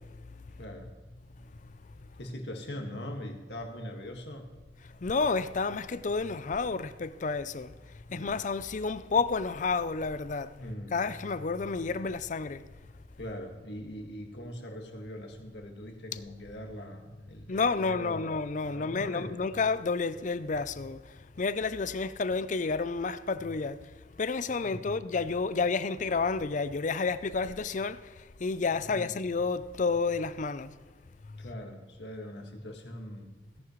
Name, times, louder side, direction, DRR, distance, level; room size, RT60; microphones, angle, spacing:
voice 1, 0.6-0.9 2.2-4.5 8.1-8.4 10.6-11.0 13.2-18.3 18.6-19.4 24.6-25.1 28.9-29.2 31.4-33.3, equal, 65° left, 1.9 m, -41 dB
voice 2, 5.0-7.7 8.1-10.5 10.9-12.6 17.5-21.0 21.4-23.8 24.2-30.7, left 4 dB, 45° left, 0.5 m, -30 dB
17.0 x 10.5 x 3.1 m
head